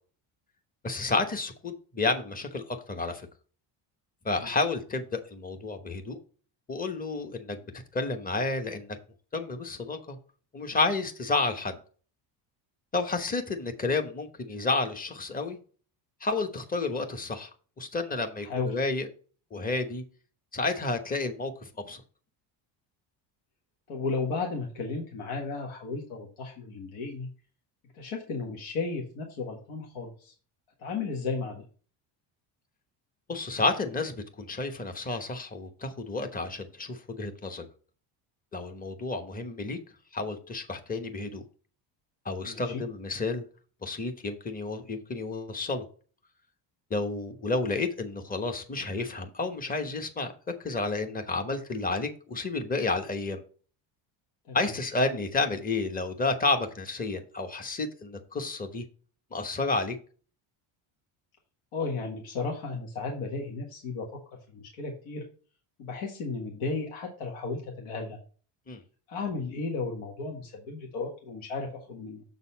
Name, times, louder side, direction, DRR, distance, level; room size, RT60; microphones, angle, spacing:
voice 1, 0.8-3.3 4.2-6.2 6.7-7.6 7.9-9.0 9.3-10.2 10.5-11.8 12.9-15.6 16.2-17.5 17.8-19.1 19.5-20.0 20.5-22.0 33.3-37.7 38.5-39.8 40.1-41.4 42.2-43.4 43.8-45.8 46.9-50.3 50.6-53.4 54.5-58.8 59.3-60.0 68.7-68.8, left 3 dB, 15° left, 7 dB, 1.1 m, -31 dB
voice 2, 18.4-18.7 23.9-27.3 27.9-30.3 30.8-31.6 42.4-42.8 54.5-54.7 61.7-64.1 64.5-65.2 65.8-68.2 69.1-72.2, left 4 dB, 75° left, 1 dB, 1.6 m, -34 dB
7.1 x 4.1 x 5.6 m, 0.40 s
cardioid pair, 100°, 49 cm